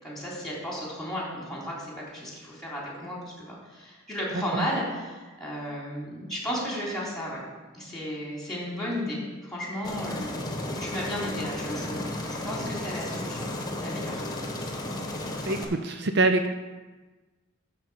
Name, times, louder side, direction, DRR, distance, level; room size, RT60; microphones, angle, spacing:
voice 1, 0.0-7.4 7.7-13.5 13.8-14.3, equal, 5° left, -5 dB, 3.4 m, -34 dB
voice 2, 4.3-4.7 15.4-16.5, right 2 dB, 60° right, 7 dB, 0.6 m, -25 dB
Aircraft, 9.8-15.6, left 1 dB, 20° left, 1.3 m, -33 dB
13.0 x 4.4 x 6.9 m, 1.2 s
head